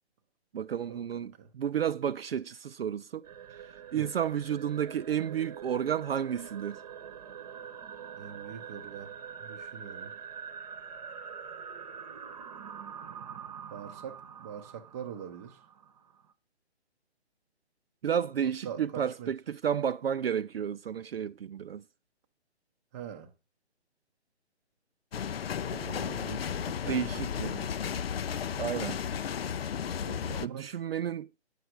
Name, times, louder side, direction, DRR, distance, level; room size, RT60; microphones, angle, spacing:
voice 1, 0.5-6.8 18.0-21.8 25.7-26.3 26.9-27.7 28.6-29.0 30.4-31.3, right 8 dB, 60° right, 0.5 m, -32 dB
sound 1, 3.2-16.3, right 7 dB, 35° right, 1.0 m, -45 dB
voice 2, 8.2-9.1 9.4-10.1 13.7-15.6 18.6-19.3 22.9-23.3 26.1-27.2 30.0-30.7, right 8 dB, 15° right, 0.7 m, -43 dB
sound 2, 25.1-30.5, left 8 dB, 60° left, 0.5 m, -34 dB
9.3 x 6.6 x 5.9 m
figure-of-eight pair, 150°, 34 cm